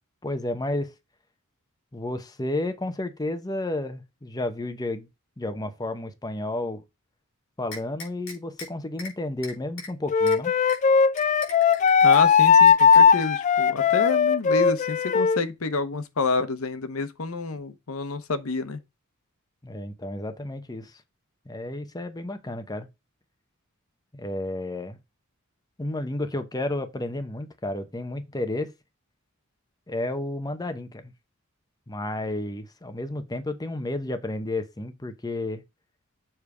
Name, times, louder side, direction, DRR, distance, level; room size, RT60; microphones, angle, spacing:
voice 1, 0.2-0.9 1.9-5.1 5.4-6.8 7.6-10.5 19.6-21.0 21.5-22.9 24.1-25.0 25.8-28.7 29.9-31.1 31.9-35.6, left 1 dB, 20° left, 0.9 m, -31 dB
sound 1, 7.7-8.7 9.0-9.1 9.4-9.9 10.3-10.4 10.7-10.8 11.2-12.2 12.5-13.2, left 3 dB, 60° left, 3.9 m, -39 dB
Wind instrument woodwind instrument, 10.1-15.4, left 6 dB, 35° left, 0.3 m, -18 dB
voice 2, 12.0-18.8, left 3 dB, 85° left, 0.9 m, -29 dB
7.3 x 3.4 x 4.8 m
head